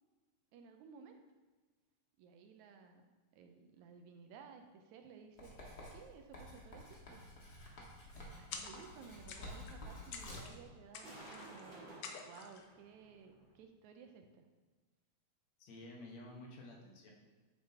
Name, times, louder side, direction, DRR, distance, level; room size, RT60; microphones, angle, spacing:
voice 1, 0.5-1.2 2.2-3.1 3.3-5.5 5.9-7.2 8.4-14.5, right 6 dB, 80° right, 5 dB, 1.9 m, -57 dB
Writing, 5.4-10.6, left 1 dB, 40° left, 1.7 m, -51 dB
sound 1, 8.5-9.0 9.3-9.8 10.1-10.6 10.9-11.6 12.0-12.7, left 5 dB, 85° left, 1.2 m, -49 dB
sound 2, 8.6-13.5, right 2 dB, 30° right, 1.6 m, -57 dB
voice 2, 15.6-17.1, left 1 dB, 65° left, -1 dB, 2.4 m, -52 dB
9.5 x 7.4 x 2.8 m, 1.3 s
omnidirectional pair, 3.5 m